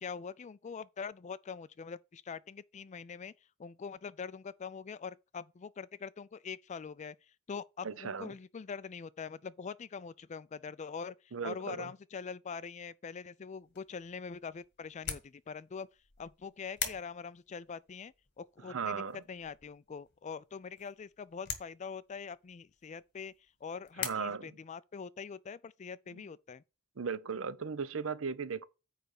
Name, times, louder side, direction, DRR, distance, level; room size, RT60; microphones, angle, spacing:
voice 1, 0.0-3.3 3.6-7.2 7.5-15.9 16.2-19.0 19.3-23.3 23.6-26.6, left 5 dB, 35° left, 0.4 m, -43 dB
voice 2, 7.8-8.3 11.3-11.9 18.7-19.2 24.0-24.5 27.0-28.7, right 5 dB, 70° right, 0.6 m, -37 dB
sound 1, 13.5-24.1, left 7 dB, 55° left, 1.7 m, -45 dB
9.3 x 3.4 x 6.5 m
head